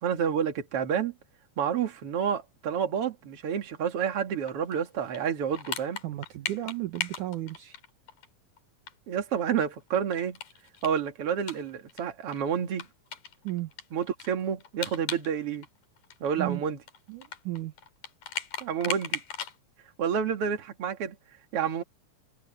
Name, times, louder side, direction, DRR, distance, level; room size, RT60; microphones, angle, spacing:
voice 1, 0.0-1.1 1.6-6.0 9.1-10.4 10.8-12.9 13.9-15.7 16.2-16.8 18.6-19.2 20.0-21.2 21.5-21.8, right 8 dB, 45° right, 2.7 m, -29 dB
sound 1, 4.5-8.3 8.6-8.7 8.9-9.0 9.3-12.0 12.3-12.4 12.8-15.3 15.5-19.6, left 7 dB, 65° left, 3.8 m, -38 dB
voice 2, 6.0-7.8 13.4-13.7 16.4-16.6 17.1-17.7, right 16 dB, 70° right, 2.5 m, -34 dB
omnidirectional pair, 3.9 m